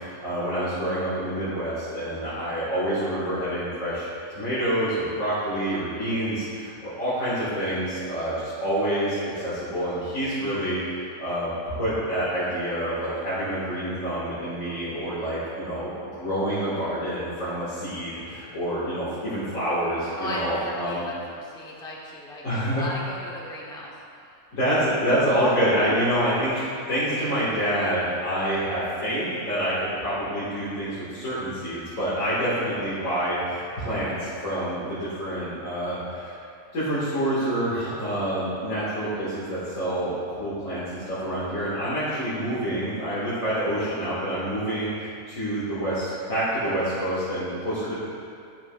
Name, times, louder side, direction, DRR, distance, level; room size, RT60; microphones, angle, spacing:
voice 1, 0.2-4.0 4.4-6.3 7.0-8.3 8.6-9.1 9.4-10.8 11.2-11.5 11.8-15.9 16.2-18.1 18.5-21.0 22.4-22.8 24.5-26.5 26.9-29.7 30.0-30.9 31.2-33.4 33.9-34.1 34.4-34.8 35.2-36.0 36.7-40.1 40.4-40.8 41.2-44.9 45.4-46.0 46.3-48.0, equal, 70° left, -13 dB, 2.3 m, -27 dB
voice 2, 20.1-23.9, left 1 dB, 5° left, -4 dB, 0.8 m, -35 dB
10.5 x 7.2 x 2.4 m, 2.4 s
omnidirectional pair, 1.4 m